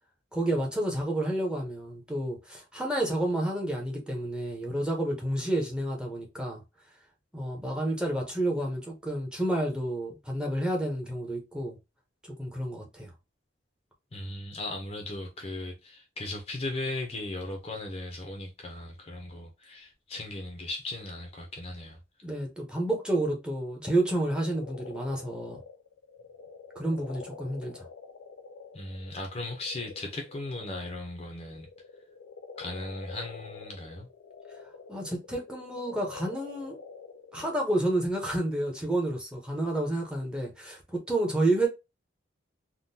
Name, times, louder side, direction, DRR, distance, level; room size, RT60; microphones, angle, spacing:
voice 1, 0.3-6.6 7.3-11.8 12.4-13.1 22.2-25.6 26.7-27.9 34.9-36.8 37.3-41.7, right 1 dB, 5° right, 0.7 m, -30 dB
voice 2, 14.1-22.0 28.7-31.7 32.6-34.1, left 2 dB, 30° left, 0.5 m, -37 dB
sound 1, 24.3-31.0 31.3-37.7, left 5 dB, 85° left, 0.4 m, -47 dB
3.6 x 2.2 x 2.6 m
head